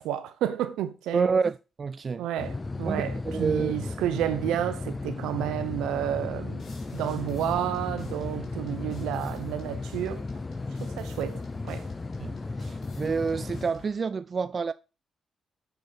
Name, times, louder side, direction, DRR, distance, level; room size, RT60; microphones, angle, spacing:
voice 1, 0.0-1.3 2.2-6.6 6.9-10.2 10.8-11.9, right 11 dB, 90° right, 0.8 m, -31 dB
voice 2, 1.1-2.3 2.8-3.7 12.2-12.3 12.6-14.7, right 5 dB, 50° right, 0.3 m, -28 dB
sound 1, 2.4-13.7, left 3 dB, 35° left, 0.5 m, -35 dB
sound 2, 6.6-14.0, left 4 dB, 70° left, 2.7 m, -50 dB
6.8 x 6.5 x 4.1 m
supercardioid pair, 55°, 0 cm